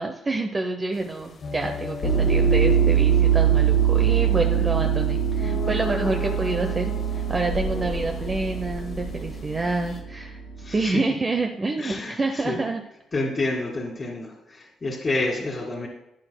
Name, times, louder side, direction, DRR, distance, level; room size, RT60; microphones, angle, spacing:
voice 1, 0.0-10.4 10.7-12.8, right 3 dB, 30° right, 4 dB, 0.7 m, -27 dB
sound 1, 0.9-10.0, left 4 dB, 50° left, 1.3 m, -37 dB
sound 2, 2.0-10.7, right 8 dB, 70° left, 1.7 m, -23 dB
voice 2, 11.8-12.2 12.4-12.6 13.1-15.9, left 2 dB, 30° left, -3 dB, 1.8 m, -28 dB
11.5 x 8.9 x 2.2 m, 0.88 s
cardioid pair, 90°, 0 cm